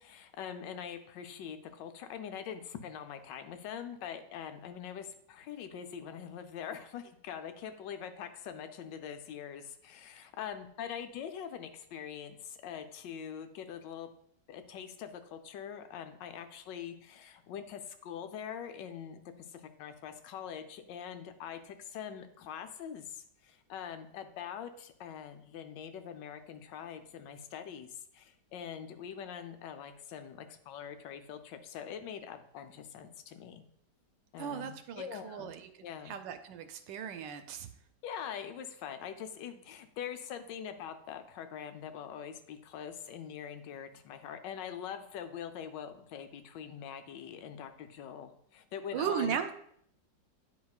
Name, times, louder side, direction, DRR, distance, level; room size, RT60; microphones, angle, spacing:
voice 1, 0.0-14.1 14.5-33.6 34.3-35.5 35.8-36.2 38.0-49.5, left 8 dB, 80° left, 8 dB, 1.3 m, -43 dB
voice 2, 34.4-35.7 36.1-37.7 48.9-49.5, right 8 dB, 85° right, 9 dB, 1.3 m, -36 dB
9.4 x 5.0 x 2.3 m, 0.68 s
omnidirectional pair, 1.9 m